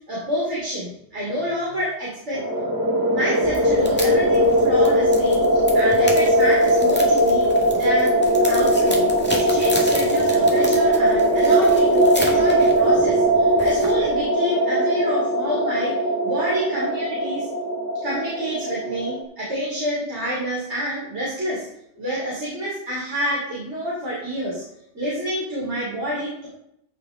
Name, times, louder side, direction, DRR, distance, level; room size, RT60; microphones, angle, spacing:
voice 1, 0.1-2.4 3.1-8.1 8.5-16.0 16.2-17.5 18.0-21.7 22.0-24.6 24.9-26.5, equal, 75° right, -8 dB, 3.4 m, -28 dB
sound 1, 2.3-19.2, equal, 20° right, 1.2 m, -19 dB
sound 2, 3.4-14.2, equal, 10° left, 1.6 m, -34 dB
14.5 x 5.0 x 3.8 m, 0.75 s
omnidirectional pair, 1.2 m